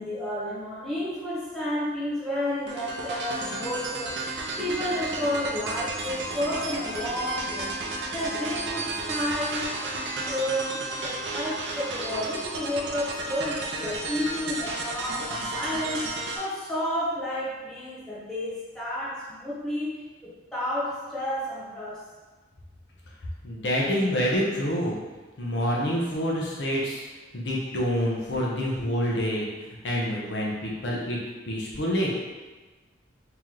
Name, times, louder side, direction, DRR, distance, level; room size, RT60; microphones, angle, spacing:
voice 1, 0.0-7.7 8.1-10.0 10.3-16.1 16.4-22.1, left 1 dB, 5° left, -10 dB, 1.0 m, -31 dB
sound 1, 2.7-16.4, right 2 dB, 60° right, 0.5 m, -33 dB
voice 2, 23.4-25.0 25.4-27.0 27.3-31.2 31.5-32.2, equal, 70° left, -4 dB, 0.7 m, -27 dB
3.0 x 2.9 x 3.8 m, 1.2 s
head